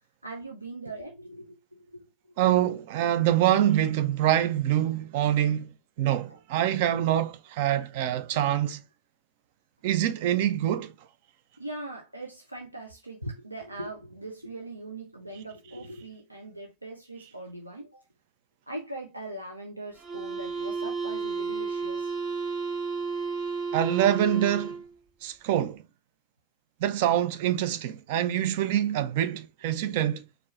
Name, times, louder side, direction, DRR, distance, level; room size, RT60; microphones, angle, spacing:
voice 1, 0.2-2.0 6.3-6.4 8.3-8.4 11.6-18.0 18.7-22.1, right 2 dB, 85° right, 0.7 m, -40 dB
voice 2, 2.4-5.7 6.0-8.8 9.8-10.9 23.7-24.8 25.2-25.8 26.8-30.2, right 11 dB, 50° right, 0.5 m, -25 dB
sound 1, 19.9-24.9, right 4 dB, 15° right, 2.3 m, -32 dB
4.4 x 2.7 x 3.2 m
figure-of-eight pair, 90°, 0 cm